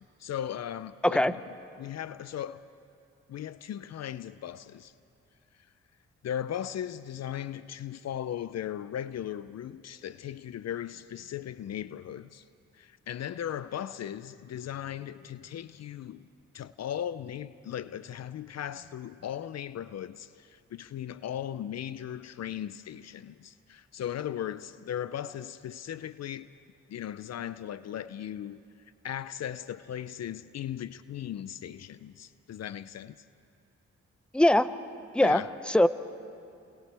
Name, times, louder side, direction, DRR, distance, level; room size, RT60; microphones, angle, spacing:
voice 1, 0.0-1.4 1.8-2.7 3.3-4.9 6.2-12.4 12.7-16.3 16.5-26.5 26.9-28.6 29.0-33.2 35.2-35.5, left 10 dB, 60° left, 0.6 m, -37 dB
voice 2, 1.0-1.3 34.3-34.7 35.1-35.9, left 1 dB, 5° left, 0.8 m, -22 dB
28.5 x 27.5 x 3.4 m
supercardioid pair, 50°, 29 cm